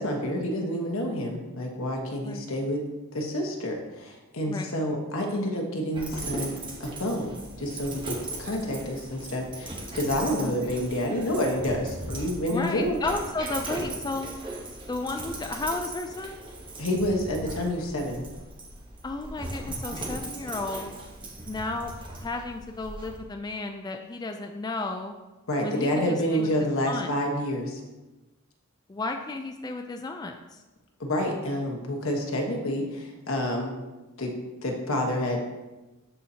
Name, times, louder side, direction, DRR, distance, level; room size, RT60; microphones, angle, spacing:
voice 1, 0.0-2.8 3.1-13.0 16.8-18.2 25.5-27.8 31.0-33.7 34.2-34.3 34.6-35.5, left 1 dB, 70° left, 1 dB, 1.2 m, -28 dB
Dog, 5.9-23.2, right 2 dB, 25° right, 1.0 m, -38 dB
voice 2, 10.4-10.8 12.5-14.3 14.9-16.4 19.0-20.9 21.5-21.9 22.2-25.2 25.6-26.5 26.9-27.1 28.9-30.6, left 3 dB, 20° left, 4 dB, 0.3 m, -33 dB
12.5 x 4.3 x 2.8 m, 1.1 s
head